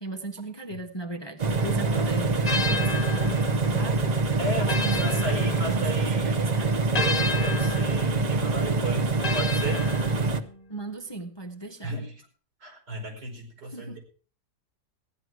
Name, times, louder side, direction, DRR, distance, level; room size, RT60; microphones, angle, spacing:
voice 1, 0.0-4.0 4.4-6.8 10.7-11.9 13.7-14.0, right 2 dB, 20° left, 1.0 m, -37 dB
sound 1, 1.4-10.4, right 3 dB, 40° right, 0.5 m, -25 dB
sound 2, 2.4-6.2 6.9-10.6, left 3 dB, 40° left, 0.5 m, -33 dB
voice 2, 4.4-6.4 6.9-9.8 11.8-12.1 12.6-14.0, right 1 dB, 85° right, 5.6 m, -35 dB
15.5 x 11.0 x 4.7 m
omnidirectional pair, 1.8 m